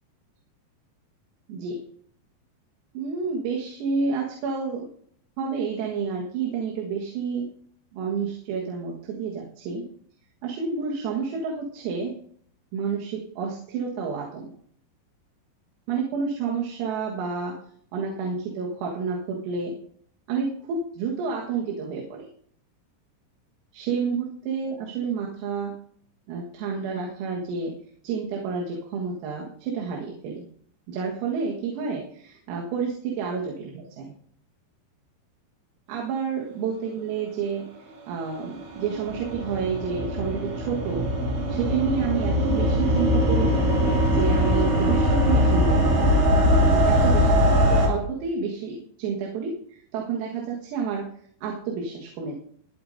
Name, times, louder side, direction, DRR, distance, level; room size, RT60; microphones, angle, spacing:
voice 1, 1.5-1.8 3.0-4.9 5.4-7.5 7.9-9.9 10.4-12.1 12.7-14.5 15.9-17.6 17.9-19.7 20.3-22.3 23.7-25.7 26.3-27.8 28.0-30.5 30.9-34.1 35.9-37.7 38.1-41.1 41.5-43.6 44.1-46.3 46.7-51.1 51.4-52.3, right 5 dB, 85° right, -2 dB, 4.3 m, -29 dB
sound 1, 38.2-47.9, equal, 65° right, 4.9 m, -21 dB
23.5 x 8.4 x 2.7 m, 0.62 s
omnidirectional pair, 5.9 m